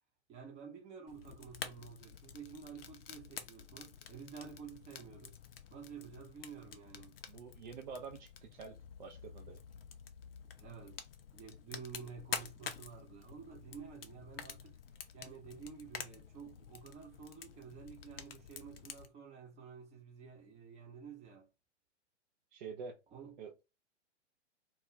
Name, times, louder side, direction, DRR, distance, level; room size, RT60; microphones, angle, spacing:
voice 1, 0.3-5.4 5.7-7.2 10.6-11.0 11.3-14.8 15.1-21.5 23.1-23.4, right 6 dB, 20° right, 0.8 m, -51 dB
Fire, 1.1-19.1, left 8 dB, 55° left, 0.5 m, -49 dB
voice 2, 7.3-9.6 22.5-23.0 23.4-23.5, right 5 dB, 40° right, 0.4 m, -47 dB
2.3 x 2.2 x 3.0 m
figure-of-eight pair, 110°, 36 cm